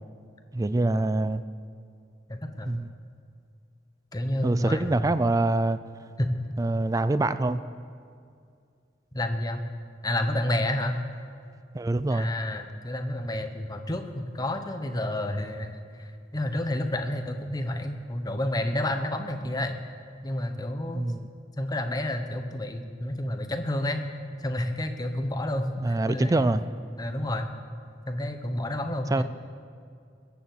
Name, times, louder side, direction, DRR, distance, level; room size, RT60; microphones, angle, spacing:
voice 1, 0.5-1.4 2.7-2.9 4.4-5.8 6.6-7.6 11.7-12.3 20.9-21.2 25.8-26.6 29.1-29.2, right 2 dB, 20° right, 13 dB, 0.3 m, -25 dB
voice 2, 2.3-2.7 4.1-5.1 6.2-6.3 9.1-9.6 10.0-11.0 12.1-19.7 20.2-21.1 21.6-24.0 24.4-26.5 27.0-27.5 28.1-29.2, left 1 dB, 20° left, 6 dB, 1.0 m, -30 dB
21.0 x 7.2 x 7.8 m, 2.3 s
head